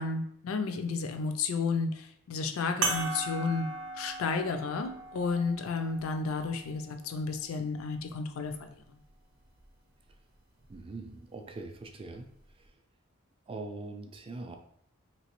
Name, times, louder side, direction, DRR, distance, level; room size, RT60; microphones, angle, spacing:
voice 1, 0.0-3.7 4.0-8.8, left 4 dB, 80° left, 7 dB, 0.4 m, -32 dB
sound 1, 2.8-7.6 8.4-8.5 10.6-10.8, right 3 dB, 80° right, 0.6 m, -37 dB
voice 2, 10.7-12.3 12.6-12.7 13.5-14.6, right 3 dB, 25° right, 5 dB, 0.3 m, -42 dB
3.0 x 2.8 x 3.0 m, 0.69 s
head